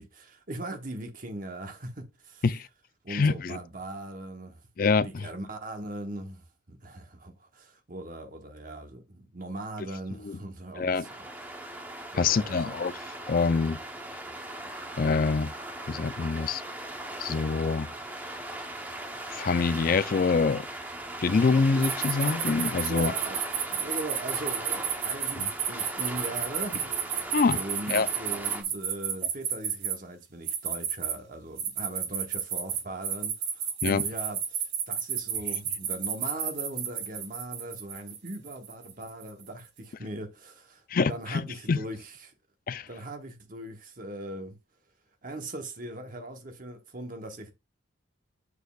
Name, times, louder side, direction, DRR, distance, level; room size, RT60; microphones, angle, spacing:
voice 1, 0.0-2.4 3.0-4.6 5.0-11.1 12.1-12.8 22.9-23.4 23.7-42.3 42.9-44.6 45.2-47.5, right 1 dB, 40° right, 1.0 m, -40 dB
voice 2, 3.1-3.6 4.8-5.3 10.2-10.4 10.8-11.0 12.1-12.9 13.3-13.8 15.0-15.5 15.9-16.6 17.2-17.9 19.3-20.7 21.2-23.1 25.4-25.5 27.3-27.6 27.9-28.1 33.8-34.0 40.9-41.4 41.7-41.8 42.7-42.9, left 4 dB, 45° left, 0.4 m, -25 dB
sound 1, 11.0-28.6, right 1 dB, 10° right, 0.9 m, -38 dB
sound 2, 21.8-29.9 30.5-31.1 31.6-39.4, right 8 dB, 75° right, 2.5 m, -31 dB
7.2 x 6.4 x 2.4 m
head